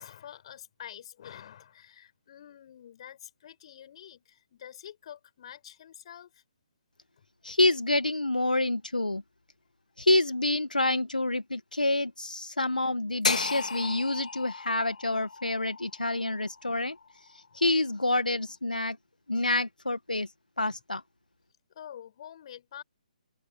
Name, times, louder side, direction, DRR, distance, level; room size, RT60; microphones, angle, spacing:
voice 1, 0.0-6.4 21.7-22.8, left 10 dB, 45° left, 6.0 m, -47 dB
voice 2, 7.4-9.2 10.0-16.9 17.3-19.0 19.3-20.3 20.6-21.0, left 2 dB, 85° left, 1.7 m, -27 dB
sound 1, 13.2-17.4, left 4 dB, 65° left, 3.5 m, -34 dB
figure-of-eight pair, 140°, 4 cm